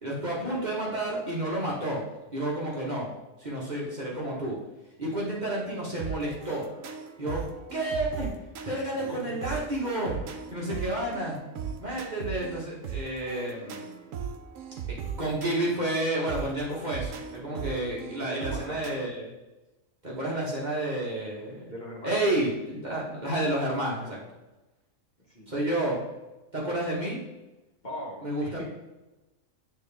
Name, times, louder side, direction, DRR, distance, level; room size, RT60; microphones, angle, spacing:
voice 1, 0.0-2.0 2.3-3.1 3.4-4.6 5.0-6.7 7.2-7.4 7.7-8.3 8.6-10.1 10.5-11.4 11.8-13.9 14.9-19.3 20.0-21.7 22.0-24.2 25.5-26.0 26.5-27.2 28.2-28.6, right 1 dB, 35° right, -5 dB, 1.4 m, -30 dB
sound 1, 6.0-18.9, right 7 dB, 75° right, 1.1 m, -38 dB
voice 2, 8.9-9.3 10.7-10.8 18.1-18.8 21.7-22.2 25.3-25.5 25.8-26.0 27.8-28.6, equal, 35° left, -5 dB, 1.6 m, -41 dB
9.1 x 3.4 x 3.4 m, 1.1 s
omnidirectional pair, 1.4 m